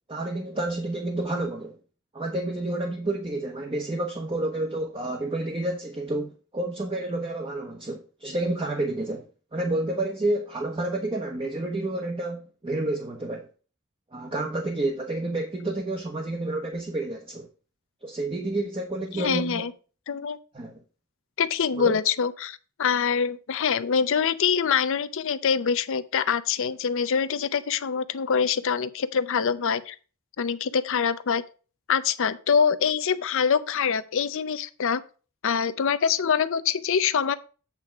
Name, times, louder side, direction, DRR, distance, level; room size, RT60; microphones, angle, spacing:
voice 1, 0.1-1.7 2.1-13.5 14.1-17.5 18.0-19.6 20.5-20.8 21.8-22.0, right 2 dB, 25° right, 0.9 m, -30 dB
voice 2, 19.1-19.7 20.1-20.4 21.4-30.0 30.4-31.4 31.9-35.0 35.4-37.4, left 6 dB, 65° left, 0.6 m, -25 dB
8.2 x 3.7 x 5.8 m
head